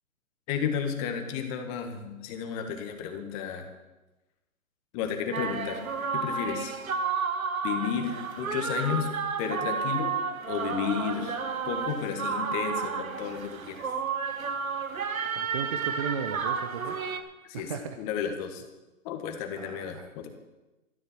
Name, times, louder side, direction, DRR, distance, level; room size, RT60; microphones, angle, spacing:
voice 1, 0.5-3.7 4.9-5.8 6.1-6.8 7.6-9.1 9.4-10.1 10.5-11.4 11.7-13.9 17.4-17.7 18.0-18.6 19.0-20.3, left 7 dB, 25° left, 5 dB, 1.8 m, -32 dB
sound 1, 5.3-17.2, right 5 dB, 75° right, 1.6 m, -31 dB
voice 2, 15.2-17.0 17.5-18.0 19.6-20.1, right 7 dB, 25° right, 7 dB, 0.6 m, -36 dB
14.5 x 13.5 x 4.5 m, 1.1 s
hypercardioid pair, 145°, 42 cm